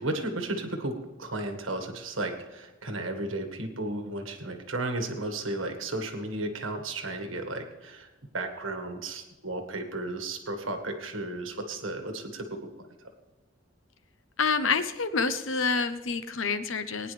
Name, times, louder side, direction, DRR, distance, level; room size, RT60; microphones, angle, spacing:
voice 1, 0.0-8.1 8.3-12.7, right 2 dB, 85° right, 5 dB, 1.7 m, -34 dB
voice 2, 14.4-17.1, left 4 dB, 90° left, 11 dB, 0.9 m, -27 dB
20.5 x 10.0 x 3.4 m, 1.1 s
head